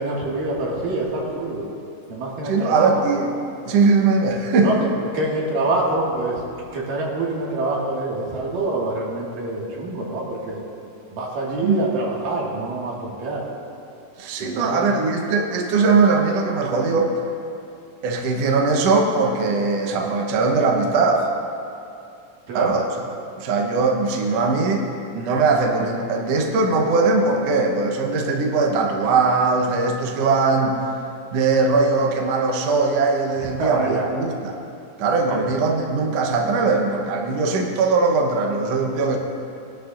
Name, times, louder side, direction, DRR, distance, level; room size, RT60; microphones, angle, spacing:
voice 1, 0.0-1.7 2.1-2.9 4.6-6.4 6.7-10.6 11.1-13.5 14.4-14.8 22.5-22.8 33.4-34.1 35.3-35.5, right 2 dB, 85° right, -4 dB, 3.6 m, -26 dB
voice 2, 2.4-3.3 3.7-4.7 11.6-11.8 14.2-17.1 18.0-21.3 22.5-22.9 23.4-24.9 25.1-30.8 31.3-34.5 35.0-39.2, right 4 dB, 65° right, 1 dB, 1.8 m, -20 dB
20.5 x 11.5 x 2.6 m, 2.6 s
omnidirectional pair, 3.8 m